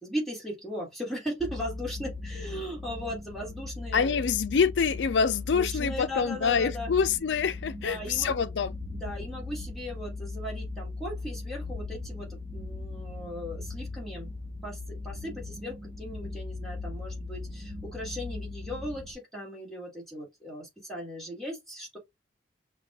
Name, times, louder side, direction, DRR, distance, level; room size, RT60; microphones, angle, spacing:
voice 1, 0.0-4.2 5.5-6.9 7.8-8.4 8.9-14.3 14.6-22.0, equal, ahead, 1.8 m, -38 dB
sound 1, 1.4-19.1, left 3 dB, 30° right, 1.0 m, -38 dB
voice 2, 3.9-8.8, left 6 dB, 70° left, 0.4 m, -26 dB
5.7 x 2.3 x 2.9 m
head